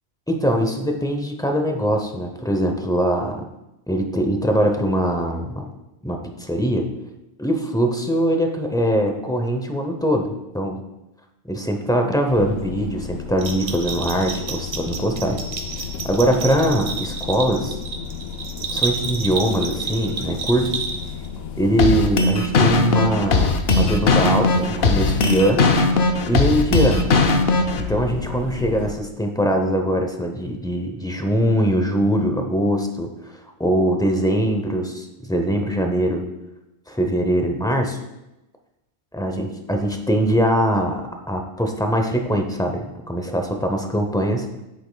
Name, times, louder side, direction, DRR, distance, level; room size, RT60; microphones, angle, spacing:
voice 1, 0.3-3.4 3.9-5.7 6.0-6.9 7.4-10.8 11.5-15.4 16.0-17.8 18.7-20.8 21.6-25.7 26.3-27.0 27.8-33.1 33.6-36.2 36.9-38.0 39.1-44.5, equal, 5° left, 4 dB, 0.5 m, -22 dB
sound 1, 12.3-28.9, left 7 dB, 85° left, 1.1 m, -33 dB
Bell, 13.4-21.3, right 5 dB, 70° right, 1.3 m, -30 dB
sound 2, 21.8-27.8, left 3 dB, 55° left, 0.7 m, -18 dB
9.6 x 8.2 x 2.3 m, 0.94 s
omnidirectional pair, 1.3 m